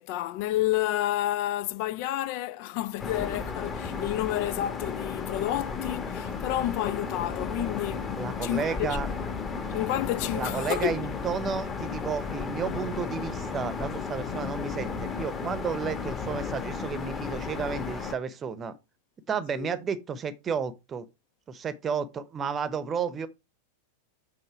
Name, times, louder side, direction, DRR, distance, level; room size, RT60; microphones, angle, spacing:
voice 1, 0.0-9.3 9.7-11.0 19.5-19.7, left 14 dB, 45° left, 0.4 m, -30 dB
sound 1, 3.0-18.1, left 5 dB, 20° left, 1.3 m, -34 dB
voice 2, 8.2-9.1 10.3-18.8 19.3-21.1 21.5-23.3, right 6 dB, 25° right, 0.8 m, -32 dB
7.9 x 3.9 x 4.8 m
figure-of-eight pair, 90°, 0 cm